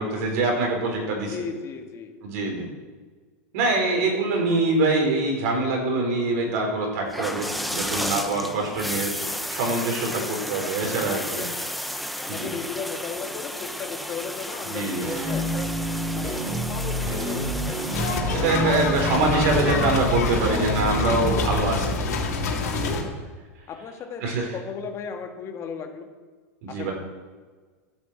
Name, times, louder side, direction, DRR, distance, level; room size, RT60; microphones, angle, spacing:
voice 1, 0.0-1.3 2.2-2.7 3.5-11.5 12.3-12.5 14.7-15.0 18.3-22.0 22.7-22.9 24.2-24.5 26.6-26.9, right 2 dB, 70° right, 1 dB, 4.9 m, -24 dB
voice 2, 1.3-2.2 10.0-11.5 12.2-15.7 16.1-17.8 22.7-23.2 23.7-26.1 26.7-26.9, left 6 dB, 35° left, 4 dB, 1.6 m, -36 dB
sound 1, 7.1-18.2, equal, ahead, 0.8 m, -33 dB
sound 2, 15.0-21.6, equal, 30° right, 2.7 m, -28 dB
sound 3, 17.9-23.0, left 3 dB, 90° left, 2.8 m, -26 dB
12.5 x 7.8 x 7.8 m, 1.4 s
supercardioid pair, 120°, 8 cm